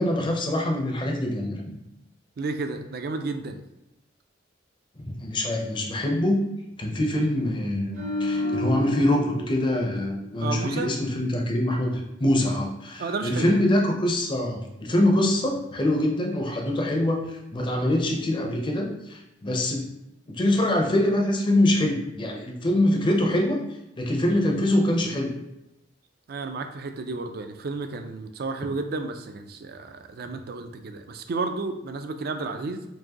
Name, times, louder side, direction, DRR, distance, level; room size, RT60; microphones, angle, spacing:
voice 1, 0.0-1.6 5.0-6.4 6.8-17.2 17.5-19.9 20.3-23.6 24.0-25.3, left 1 dB, 25° left, 1 dB, 0.6 m, -24 dB
voice 2, 2.4-3.6 10.4-10.9 13.0-13.5 26.3-32.9, right 3 dB, 55° right, 7 dB, 0.4 m, -32 dB
sound 1, 7.9-11.2 11.5-11.7, left 1 dB, 75° right, 1.3 m, -31 dB
4.6 x 2.6 x 2.9 m, 0.91 s
head